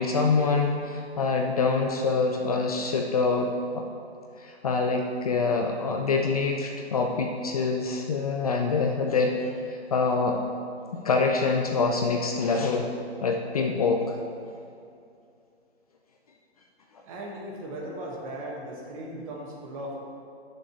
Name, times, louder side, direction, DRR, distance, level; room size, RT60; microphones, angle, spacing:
voice 1, 0.0-3.8 4.4-10.4 10.9-12.9 13.2-14.0, left 4 dB, 35° left, 2 dB, 0.6 m, -25 dB
voice 2, 17.0-20.0, right 1 dB, 30° right, -1 dB, 1.6 m, -37 dB
14.0 x 6.6 x 3.1 m, 2.5 s
hypercardioid pair, 150°, 34 cm